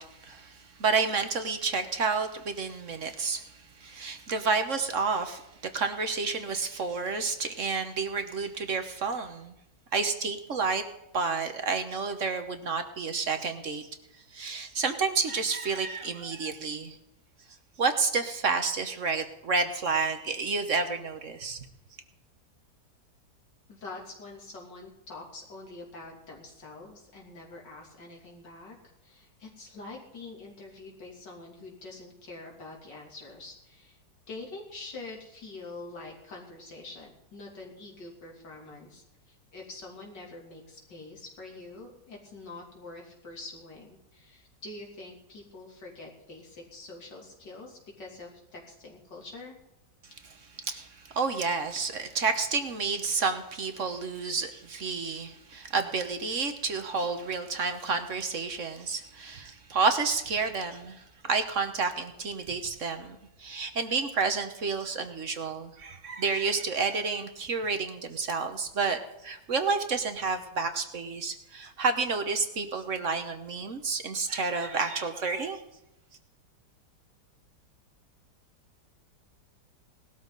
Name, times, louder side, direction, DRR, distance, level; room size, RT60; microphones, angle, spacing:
voice 1, 0.0-5.4 5.7-9.5 9.9-10.8 11.1-13.9 14.3-17.0 17.8-21.6 50.6-75.6, right 4 dB, 50° right, 7 dB, 1.3 m, -30 dB
voice 2, 23.7-28.8 29.0-34.0 34.3-49.6, left 2 dB, 90° left, -1 dB, 3.6 m, -45 dB
18.5 x 13.0 x 4.0 m, 0.89 s
omnidirectional pair, 1.8 m